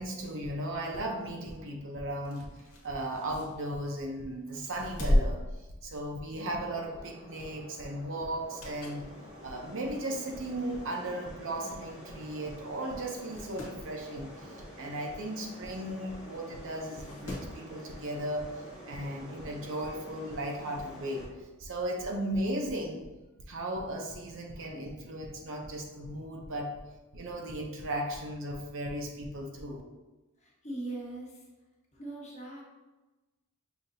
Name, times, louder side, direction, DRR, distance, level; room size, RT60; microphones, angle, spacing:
voice 1, 0.0-2.5 2.8-5.4 5.8-9.0 9.4-18.5 18.9-21.2 21.6-23.0 23.5-26.7 27.1-29.8, right 1 dB, 60° right, 1 dB, 0.7 m, -36 dB
sound 1, 2.1-4.1 4.5-6.4 6.8-7.0 8.3-9.1 9.6-9.7 10.6-10.7 10.9-11.0 11.2-11.3 12.1-12.3 12.6-12.7 13.1-13.8 15.7-15.8 16.8-17.6 18.9-19.0, left 1 dB, 80° left, 1.1 m, -34 dB
sound 2, 6.5-21.3, equal, 5° right, 1.0 m, -49 dB
voice 2, 30.4-31.4 31.9-32.6, right 2 dB, 30° left, -4 dB, 1.1 m, -40 dB
5.7 x 2.8 x 2.6 m, 1.1 s
head